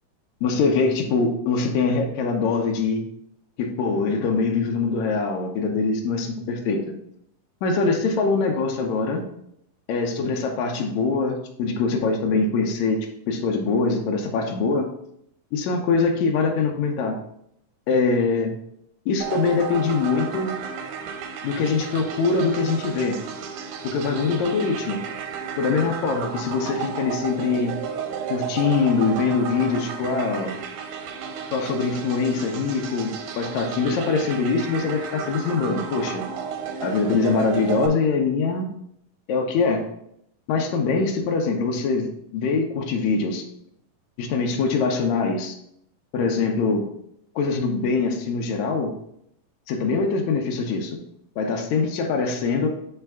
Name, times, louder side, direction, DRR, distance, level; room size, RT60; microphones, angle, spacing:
voice 1, 0.4-3.0 3.6-6.8 7.6-9.2 9.9-14.9 15.5-17.2 17.9-18.5 19.0-20.5 21.4-23.2 23.8-25.0 25.6-27.7 28.3-30.5 31.5-36.2 36.8-38.7 39.3-39.8 40.5-43.4 44.2-45.5 46.1-46.8 47.3-48.9 49.7-51.0 51.4-52.7, left 4 dB, 85° left, 2 dB, 1.6 m, -23 dB
sound 1, 19.2-37.9, right 7 dB, 80° right, 1.9 m, -33 dB
9.0 x 3.4 x 3.5 m, 0.74 s
omnidirectional pair, 4.3 m